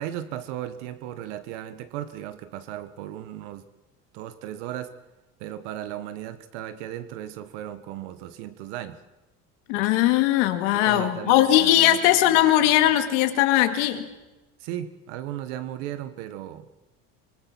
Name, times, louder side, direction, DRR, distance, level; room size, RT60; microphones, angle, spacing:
voice 1, 0.0-3.7 4.1-4.9 5.4-9.0 9.7-9.9 10.7-12.5 14.6-16.7, right 12 dB, 85° right, 12 dB, 1.4 m, -36 dB
voice 2, 9.7-14.1, left 13 dB, 80° left, 7 dB, 2.3 m, -20 dB
25.5 x 21.0 x 6.2 m, 1.0 s
cardioid pair, 160°, 35 cm